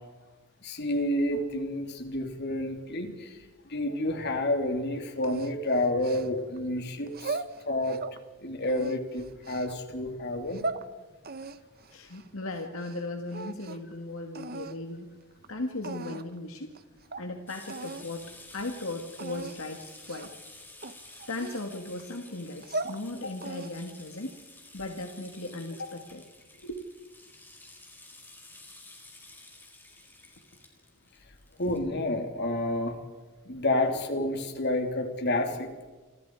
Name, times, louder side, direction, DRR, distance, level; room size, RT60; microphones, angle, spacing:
voice 1, 0.6-3.4 3.6-7.4 7.6-8.0 8.4-10.6 31.6-33.0 33.4-35.7, left 1 dB, 50° left, 5 dB, 3.4 m, -29 dB
sound 1, 5.2-6.6 7.1-8.2 8.6-9.7 10.3-10.8 11.2-13.0 13.3-13.9 14.3-14.8 15.4-15.5 15.8-16.4 16.7-16.8 17.1-17.3 17.7-18.1 18.4-18.6 19.2-19.6 20.1-20.4 20.8-22.0 22.5-23.0 23.4-23.9, right 3 dB, 45° right, 1.2 m, -38 dB
voice 2, 11.9-15.1 15.5-16.7 17.2-20.3 21.3-24.4 24.7-26.2 26.5-26.9 33.9-34.0, left 2 dB, 70° left, 4 dB, 2.1 m, -37 dB
sound 2, 17.5-31.8, left 2 dB, 10° left, 4.2 m, -51 dB
29.5 x 26.0 x 4.9 m, 1.3 s
head